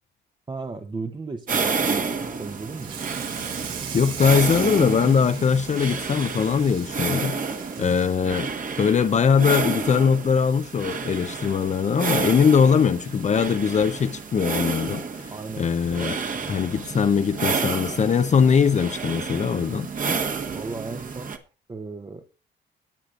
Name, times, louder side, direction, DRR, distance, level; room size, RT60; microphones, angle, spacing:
voice 1, 0.5-3.0 7.8-7.9 15.3-15.6 16.3-16.6 20.1-20.2 20.5-21.3 21.7-22.3, right 3 dB, 25° right, 0.8 m, -35 dB
sound 1, 1.5-21.4, right 5 dB, 45° right, 1.4 m, -30 dB
Water tap faucet / Sink (filling or washing), 2.7-9.3 9.7-10.0 10.3-10.4 10.8-10.9 12.0-12.1 12.6-12.8, right 7 dB, 85° right, 2.9 m, -39 dB
voice 2, 3.9-8.5 8.8-15.3 15.6-16.2 16.5-19.9, left 6 dB, 35° left, 0.6 m, -21 dB
18.0 x 8.4 x 2.5 m
cardioid pair, 90°, 20 cm